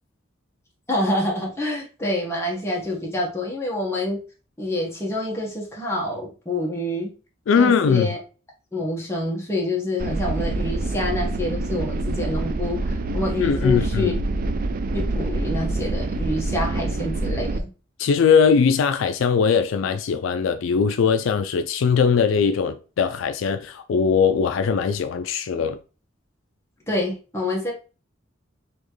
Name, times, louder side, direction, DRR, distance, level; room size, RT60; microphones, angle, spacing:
voice 1, 0.9-4.2 4.6-7.1 7.5-8.2 8.7-14.1 14.9-17.7 26.9-27.7, left 1 dB, 15° left, 1.4 m, -27 dB
voice 2, 7.5-8.1 13.4-14.2 18.0-25.8, left 6 dB, 70° left, 0.3 m, -20 dB
sound 1, 10.0-17.6, right 2 dB, 45° right, 0.4 m, -26 dB
4.2 x 3.1 x 3.1 m
head